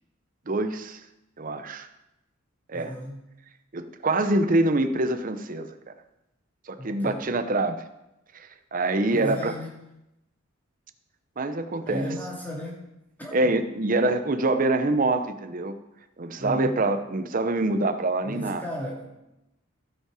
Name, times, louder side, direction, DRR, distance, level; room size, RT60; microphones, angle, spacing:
voice 1, 0.5-1.0 1.4-1.9 2.7-2.9 3.7-5.8 6.7-7.9 8.3-9.5 11.4-12.1 13.3-15.7 16.2-18.6, right 2 dB, 40° right, 9 dB, 0.7 m, -25 dB
voice 2, 2.7-3.2 6.8-7.3 9.1-9.7 11.9-12.8 13.2-13.5 16.4-16.8 18.2-19.2, equal, 10° left, -4 dB, 2.1 m, -35 dB
16.5 x 5.5 x 4.9 m, 0.91 s
head